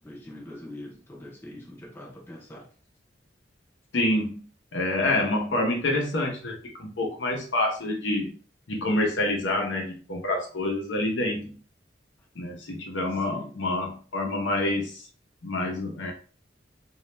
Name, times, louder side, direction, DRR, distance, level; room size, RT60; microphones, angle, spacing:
voice 1, 0.0-2.7 13.1-13.6, left 1 dB, 10° left, 0.5 m, -43 dB
voice 2, 3.9-4.4 4.7-8.4 8.7-11.5 12.4-15.0 15.4-16.1, left 1 dB, 80° left, 0.7 m, -27 dB
2.3 x 2.1 x 3.0 m
head